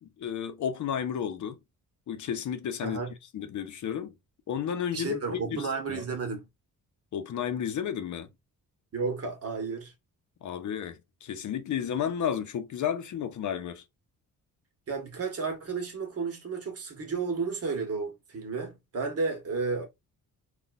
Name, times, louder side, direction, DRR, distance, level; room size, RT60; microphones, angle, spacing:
voice 1, 0.0-1.6 2.1-3.0 3.3-4.1 4.5-5.2 5.5-6.0 7.1-8.3 10.4-13.8, left 8 dB, 60° left, 0.7 m, -32 dB
voice 2, 2.8-3.1 4.9-6.5 8.9-9.9 14.9-19.9, right 4 dB, 45° right, 1.4 m, -32 dB
4.0 x 2.4 x 2.5 m
cardioid pair, 130°, 33 cm